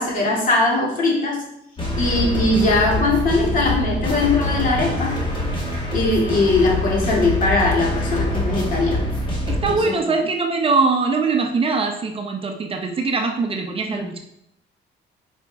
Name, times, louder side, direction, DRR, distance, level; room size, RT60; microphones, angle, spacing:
voice 1, 0.0-1.5 2.0-5.2 5.9-9.1 9.9-10.0 13.9-14.0, left 2 dB, 50° left, -2 dB, 2.4 m, -20 dB
sound 1, 1.8-9.7, left 1 dB, 25° left, 1.9 m, -24 dB
voice 2, 9.5-14.2, right 4 dB, 30° right, 4 dB, 0.8 m, -22 dB
9.0 x 5.1 x 3.5 m, 0.80 s
cardioid pair, 150°, 19 cm